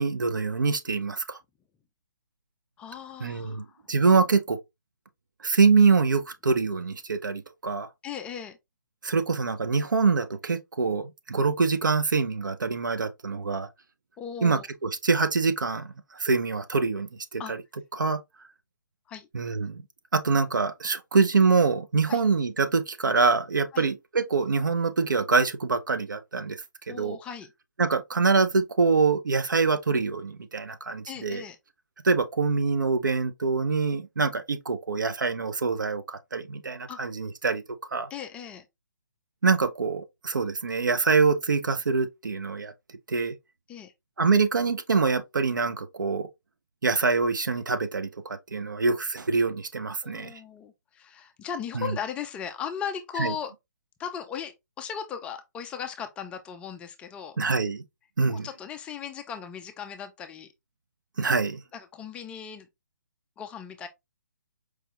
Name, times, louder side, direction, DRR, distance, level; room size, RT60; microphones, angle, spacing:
voice 1, 0.0-1.4 3.2-4.6 5.4-7.9 9.0-13.7 14.4-17.4 17.9-18.2 19.3-19.8 20.1-26.6 26.9-27.2 27.8-31.4 32.0-37.6 37.9-38.1 39.4-42.7 43.1-43.3 44.2-46.3 46.8-50.3 51.7-51.9 53.2-53.3 57.4-57.8 58.2-58.5 61.2-61.6, right 4 dB, 80° right, 0.7 m, -25 dB
voice 2, 2.8-3.8 8.0-8.6 14.2-14.7 17.4-17.5 19.1-19.3 22.1-22.2 23.7-23.9 26.9-27.5 31.1-31.6 36.9-37.0 38.1-38.6 43.7-43.9 50.0-53.5 54.0-57.4 58.3-60.5 61.7-62.7 63.4-63.9, left 7 dB, 10° left, 0.3 m, -37 dB
4.8 x 2.2 x 2.9 m
figure-of-eight pair, 140°, 10 cm